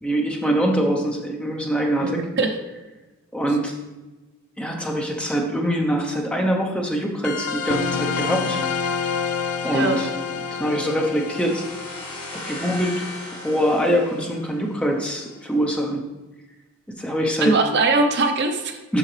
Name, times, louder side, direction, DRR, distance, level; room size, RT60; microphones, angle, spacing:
voice 1, 0.0-2.3 3.3-3.7 4.6-8.6 9.6-10.1 10.6-11.6 12.5-13.0 13.4-16.0 17.0-17.6 18.9-19.0, equal, 5° left, 1 dB, 0.7 m, -23 dB
voice 2, 2.0-2.5 9.7-10.0 17.4-18.8, right 3 dB, 50° right, 5 dB, 0.6 m, -21 dB
sound 1, 7.2-14.3, left 5 dB, 80° left, 0.4 m, -29 dB
sound 2, 11.2-14.9, left 1 dB, 20° left, 1.5 m, -38 dB
7.5 x 5.7 x 3.2 m, 1.1 s
head